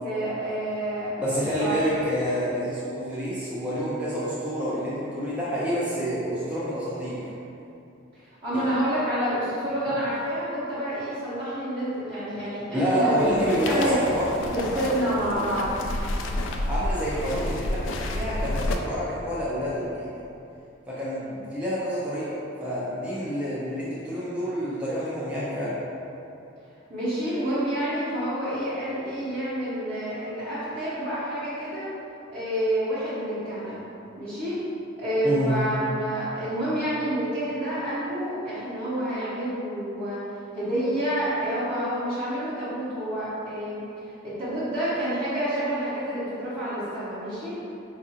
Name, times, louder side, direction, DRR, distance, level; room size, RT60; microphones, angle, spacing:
voice 1, 0.0-1.7 8.1-13.2 13.7-14.0 14.5-15.8 26.9-31.9 32.3-33.8 34.2-34.6 35.0-40.2 40.5-43.8 44.2-47.6, right 1 dB, 30° right, -16 dB, 0.8 m, -28 dB
voice 2, 1.2-7.3 8.5-8.7 12.7-14.8 15.4-15.5 16.1-16.2 16.7-20.1 20.9-25.8 35.2-35.6, equal, 5° right, -9 dB, 0.4 m, -28 dB
Parked Gondolas - Venice Italy, 13.2-18.8, left 1 dB, 75° left, 0.3 m, -30 dB
4.6 x 2.4 x 2.8 m, 2.8 s
head